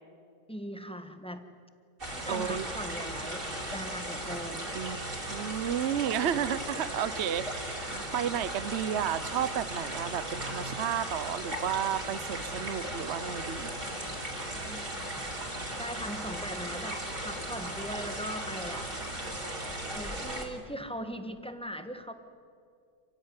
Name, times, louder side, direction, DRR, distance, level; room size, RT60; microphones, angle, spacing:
voice 1, 0.5-1.5 2.1-4.7 14.6-15.2 15.7-18.9 19.9-22.1, equal, 5° left, 7 dB, 1.3 m, -40 dB
sound 1, 2.0-20.5, right 1 dB, 30° right, 3.5 m, -37 dB
voice 2, 2.3-2.7 4.7-13.7, right 9 dB, 50° right, 15 dB, 0.8 m, -32 dB
27.5 x 16.5 x 9.7 m, 2.3 s
omnidirectional pair, 1.9 m